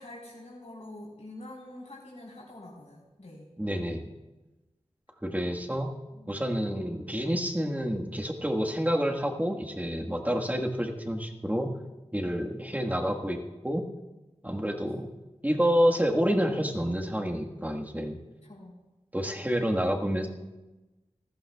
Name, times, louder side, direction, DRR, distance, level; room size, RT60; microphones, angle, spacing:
voice 1, 0.0-3.5 6.1-6.3 14.8-15.0 18.4-18.8, left 1 dB, 70° left, -6 dB, 3.6 m, -46 dB
voice 2, 3.6-4.1 5.2-5.9 6.3-11.7 12.1-13.8 14.4-15.1 15.4-18.2 19.1-20.3, equal, 15° right, 1 dB, 1.5 m, -28 dB
19.5 x 14.5 x 2.4 m, 1.1 s
wide cardioid pair, 45°, 12 cm